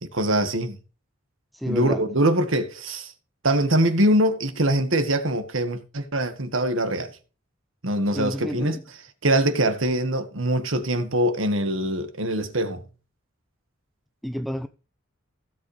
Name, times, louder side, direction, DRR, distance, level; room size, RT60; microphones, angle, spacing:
voice 1, 0.0-0.8 1.7-3.1 3.4-7.1 7.8-8.8 9.2-12.8, right 1 dB, 80° right, 1.7 m, -23 dB
voice 2, 1.5-2.0 8.1-8.8 14.2-14.7, equal, ahead, 0.5 m, -30 dB
16.0 x 7.7 x 3.3 m
head